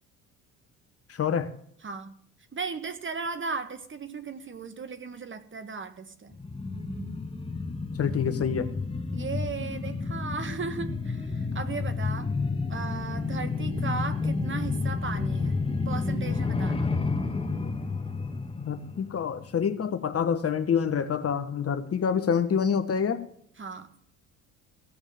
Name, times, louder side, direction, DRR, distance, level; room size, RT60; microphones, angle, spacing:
voice 1, 1.1-1.5 8.0-8.7 18.6-23.2, left 7 dB, 35° left, 9 dB, 1.3 m, -27 dB
voice 2, 1.8-2.1 2.5-6.4 9.1-12.3 12.7-16.9 23.6-23.9, right 4 dB, 30° right, 11 dB, 1.5 m, -36 dB
sound 1, 6.3-19.6 19.9-20.0, left 4 dB, 15° left, 1.6 m, -30 dB
16.0 x 7.0 x 7.2 m, 0.66 s
hypercardioid pair, 55°, 41 cm